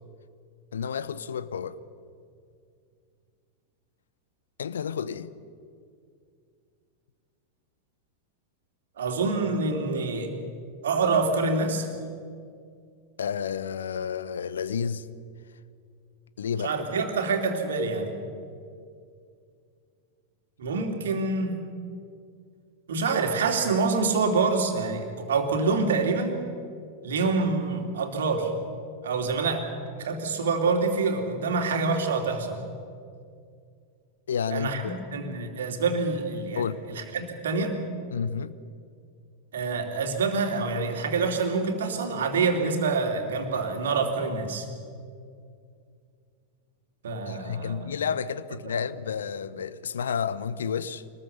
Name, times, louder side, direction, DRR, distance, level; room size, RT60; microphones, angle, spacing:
voice 1, 0.7-1.8 4.6-5.3 13.2-15.1 16.4-16.8 34.3-35.0 36.6-36.8 38.1-38.6 47.3-51.0, left 7 dB, 65° left, 0.8 m, -31 dB
voice 2, 9.0-10.3 10.8-11.9 16.6-18.1 20.6-21.6 22.9-26.4 27.0-28.5 29.0-29.7 30.0-32.6 34.5-36.6 36.9-37.8 39.5-44.7 47.0-47.9, right 4 dB, 65° right, 2.9 m, -26 dB
24.5 x 20.0 x 7.0 m
figure-of-eight pair, 90°, 0 cm